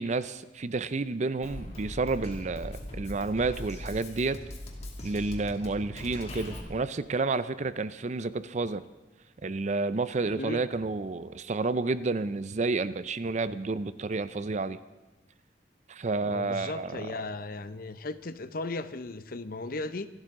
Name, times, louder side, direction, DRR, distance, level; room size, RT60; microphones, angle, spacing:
voice 1, 0.0-4.4 5.0-8.8 9.4-14.8 15.9-17.1, right 3 dB, 40° right, 14 dB, 0.5 m, -30 dB
Drum kit, 1.4-6.6, left 1 dB, 40° left, 2.2 m, -40 dB
voice 2, 16.2-20.1, left 2 dB, 55° left, 12 dB, 0.8 m, -36 dB
25.0 x 12.5 x 3.8 m, 1.2 s
head